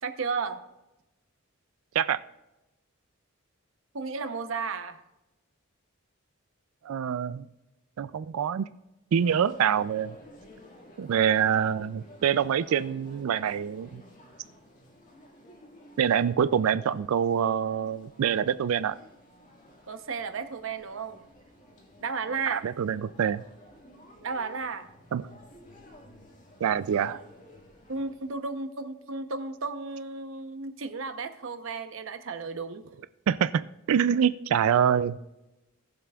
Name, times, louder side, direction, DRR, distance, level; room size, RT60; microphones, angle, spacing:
voice 1, 0.0-0.6 3.9-5.0 19.9-21.2 22.0-22.7 24.2-24.9 27.9-32.8, right 4 dB, 65° right, 9 dB, 0.8 m, -33 dB
voice 2, 6.8-7.5 8.0-8.7 9.1-10.2 11.0-14.0 16.0-19.0 22.5-23.4 25.1-25.3 26.6-27.2 33.3-35.2, right 8 dB, 85° right, 15 dB, 0.3 m, -25 dB
sound 1, 9.2-28.5, left 1 dB, 35° left, 1.9 m, -53 dB
18.5 x 7.6 x 2.3 m, 0.97 s
head